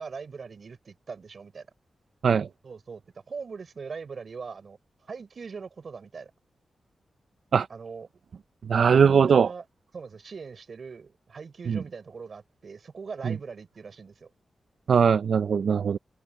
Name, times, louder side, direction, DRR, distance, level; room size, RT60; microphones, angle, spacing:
voice 1, 0.0-1.7 2.6-3.0 3.3-4.8 5.1-6.3 7.7-8.1 9.0-9.6 9.9-14.3, right 5 dB, 50° right, 4.7 m, -40 dB
voice 2, 8.7-9.5 11.7-11.8 13.2-13.3 14.9-16.0, right 6 dB, 70° right, 0.4 m, -20 dB
wide cardioid pair, 130°, 0 cm